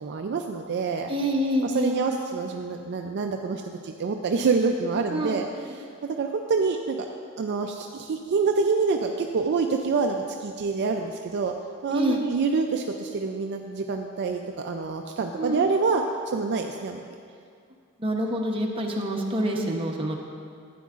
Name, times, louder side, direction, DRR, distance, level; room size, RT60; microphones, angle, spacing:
voice 1, 0.0-1.1 1.6-5.5 6.2-7.1 7.4-11.5 11.8-16.0 16.3-17.0, right 4 dB, 50° right, 3 dB, 0.4 m, -26 dB
voice 2, 1.1-2.0 5.1-5.4 5.7-5.8 11.9-12.2 15.4-15.7 18.0-20.1, equal, 25° right, 0 dB, 0.9 m, -26 dB
12.5 x 9.2 x 2.5 m, 2.3 s
head